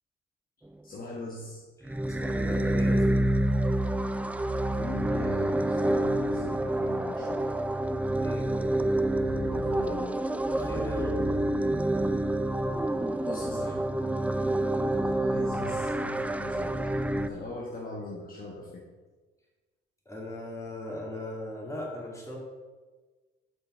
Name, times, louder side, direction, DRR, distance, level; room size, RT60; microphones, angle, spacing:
voice 1, 0.8-1.7 4.7-7.6 9.2-10.2 13.0-14.0 15.0-18.8, left 2 dB, 45° left, -2 dB, 1.3 m, -40 dB
voice 2, 1.8-3.4 8.2-8.5 10.6-11.3 20.1-22.4, left 1 dB, 15° left, -3 dB, 2.6 m, -37 dB
sound 1, 1.8-17.3, right 1 dB, 5° right, 0.4 m, -28 dB
7.8 x 5.5 x 4.5 m, 1.3 s
cardioid pair, 90°, 20 cm